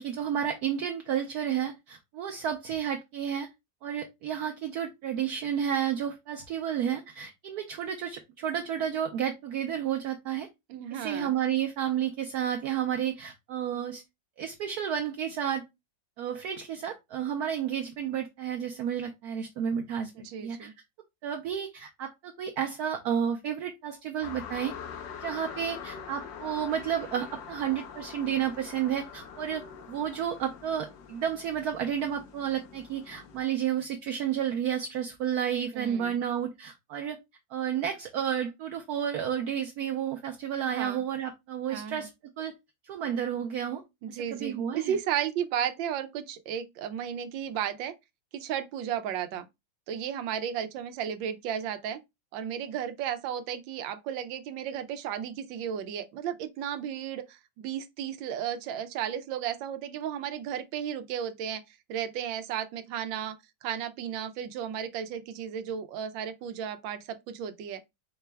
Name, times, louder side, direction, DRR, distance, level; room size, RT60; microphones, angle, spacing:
voice 1, 0.0-3.5 3.8-10.5 10.9-14.0 14.4-15.6 16.2-20.7 21.2-24.7 25.2-37.2 37.5-42.1 42.4-42.5 42.8-43.8 44.1-44.9, right 9 dB, 70° right, 1.0 m, -31 dB
voice 2, 10.7-11.3 20.2-20.7 35.7-36.2 40.7-41.0 41.7-42.1 44.0-47.9 48.3-49.5 49.9-52.0 52.3-63.4 63.6-67.8, right 9 dB, 85° right, 1.3 m, -34 dB
sound 1, 24.2-33.4, left 7 dB, 75° left, 1.5 m, -44 dB
5.0 x 2.2 x 3.2 m
omnidirectional pair, 2.0 m